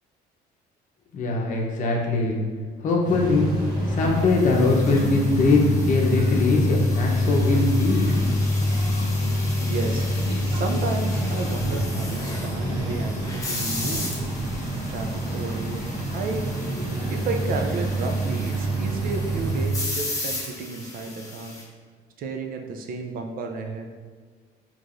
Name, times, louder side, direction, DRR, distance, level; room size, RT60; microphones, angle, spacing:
voice 1, 1.1-2.4 2.8-3.5 3.9-8.1, left 3 dB, 50° left, -1 dB, 0.8 m, -22 dB
sound 1, 3.0-19.7, equal, 25° right, 1.1 m, -26 dB
sound 2, 4.2-21.6, left 2 dB, 20° left, 0.8 m, -37 dB
voice 2, 9.6-10.1 10.5-14.2 14.7-15.9 16.1-16.7 17.1-21.6 22.2-23.9, right 3 dB, 60° right, 4 dB, 0.5 m, -32 dB
4.5 x 3.0 x 2.5 m, 1.5 s
cardioid pair, 110°, 17 cm